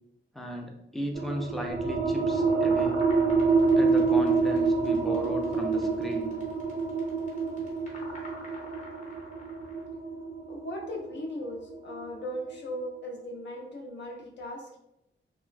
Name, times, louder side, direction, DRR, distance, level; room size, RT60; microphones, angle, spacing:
voice 1, 0.3-3.0 3.8-6.3, equal, ahead, 1 dB, 0.4 m, -36 dB
sound 1, 1.1-12.4, right 4 dB, 65° right, 0.4 m, -27 dB
sound 2, 1.8-9.8, left 1 dB, 35° left, 0.9 m, -46 dB
voice 2, 10.5-14.8, left 1 dB, 60° left, -1 dB, 0.5 m, -38 dB
2.9 x 2.2 x 2.4 m, 0.81 s
wide cardioid pair, 140°, 21 cm